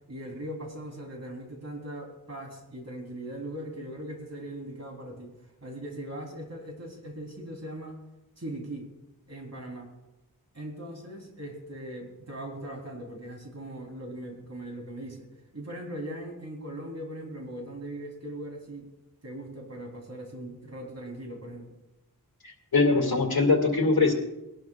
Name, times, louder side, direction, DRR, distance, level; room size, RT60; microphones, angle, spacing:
voice 1, 0.1-5.3 5.6-8.0 8.4-8.9 9.3-9.9 10.5-15.3 15.5-18.9 19.2-21.7, right 1 dB, 45° right, 1 dB, 3.3 m, -39 dB
voice 2, 22.4-24.1, left 3 dB, 70° left, 2 dB, 2.2 m, -22 dB
22.0 x 12.0 x 2.3 m, 0.97 s
wide cardioid pair, 50°, 37 cm